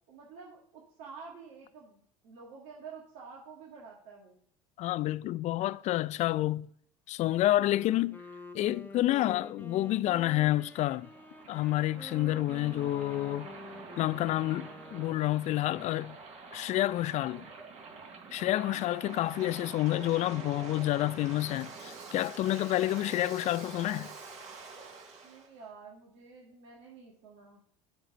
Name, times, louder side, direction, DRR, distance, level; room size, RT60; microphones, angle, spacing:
voice 1, 0.1-4.3 25.2-27.6, right 5 dB, 65° right, 1.9 m, -49 dB
voice 2, 4.8-6.7 7.1-8.2 8.5-11.1 11.5-13.5 14.0-16.2 16.5-17.5 18.3-24.1, left 15 dB, 45° left, 0.4 m, -29 dB
Wind instrument woodwind instrument, 7.5-15.5, left 2 dB, 10° left, 1.0 m, -48 dB
Waves surf, 9.7-25.5, right 4 dB, 45° right, 3.4 m, -47 dB
7.3 x 4.5 x 6.6 m
hypercardioid pair, 80°, 16 cm